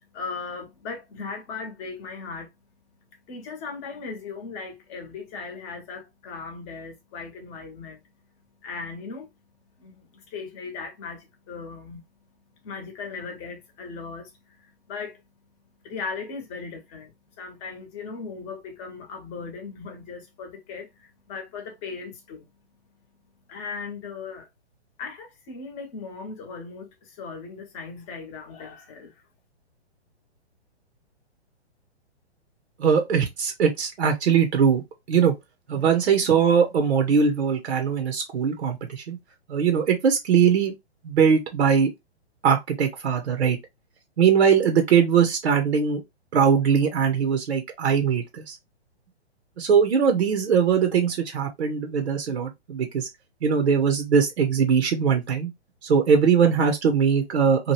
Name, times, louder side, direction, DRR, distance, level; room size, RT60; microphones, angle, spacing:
voice 1, 0.1-2.5 3.3-8.0 8.6-9.3 9.8-12.0 12.6-15.2 15.8-17.1 17.4-22.5 23.5-24.5 25.0-29.1, left 4 dB, 25° left, 0.9 m, -37 dB
voice 2, 32.8-34.8 35.1-35.3 35.7-39.2 39.5-40.7 41.0-41.9 42.4-43.6 44.2-46.0 46.3-48.6 49.6-53.1 53.4-55.5 55.8-57.7, right 6 dB, 70° right, 0.8 m, -21 dB
2.9 x 2.2 x 3.1 m
hypercardioid pair, 140°, 33 cm